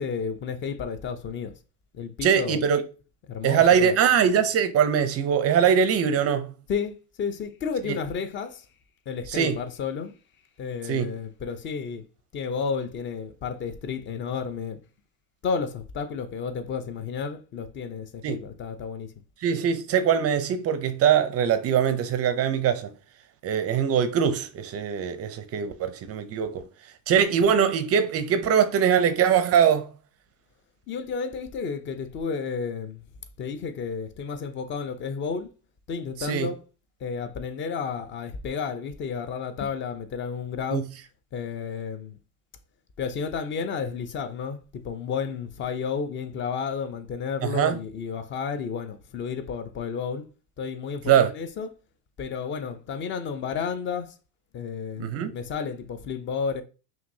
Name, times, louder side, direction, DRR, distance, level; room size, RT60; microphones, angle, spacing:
voice 1, 0.0-1.5 1.9-2.6 3.3-4.0 6.7-8.7 9.1-10.1 10.6-12.0 12.3-14.8 15.4-19.1 30.9-33.0 33.4-35.5 35.9-36.6 37.0-40.8 41.3-42.2 43.0-50.2 50.6-51.7 52.2-54.1 54.5-56.6, left 6 dB, 25° left, 0.5 m, -32 dB
voice 2, 2.2-2.8 3.4-6.5 7.9-8.0 9.3-9.6 10.9-11.1 18.2-18.4 19.4-22.9 23.4-26.6 27.1-29.9 36.2-36.5 40.7-40.8 47.4-47.8 51.1-51.3 55.0-55.3, right 8 dB, 30° right, 0.5 m, -22 dB
5.7 x 2.7 x 2.7 m
supercardioid pair, 115°, 50 cm